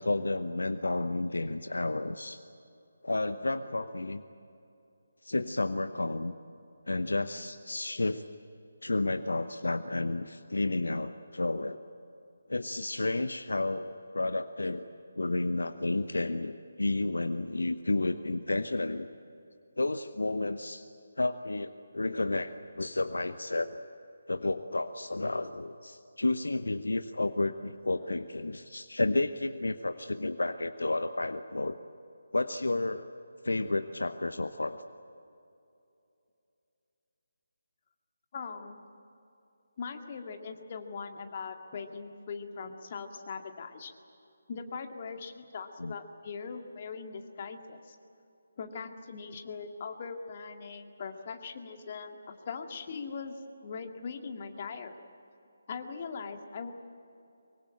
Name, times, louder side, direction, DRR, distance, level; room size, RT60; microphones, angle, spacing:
voice 1, 0.0-2.4 3.0-4.2 5.2-6.3 6.9-8.2 8.8-11.8 12.5-14.9 15.2-19.1 19.8-20.8 21.2-23.8 24.3-31.8 32.3-33.2 33.4-34.8 45.8-46.0, left 2 dB, 70° left, 10 dB, 0.9 m, -31 dB
voice 2, 38.3-38.8 39.8-43.9 44.5-48.0 48.6-54.9 55.7-56.7, left 5 dB, 35° left, 5 dB, 2.1 m, -40 dB
24.0 x 24.0 x 8.9 m, 2.7 s
figure-of-eight pair, 150°, 0 cm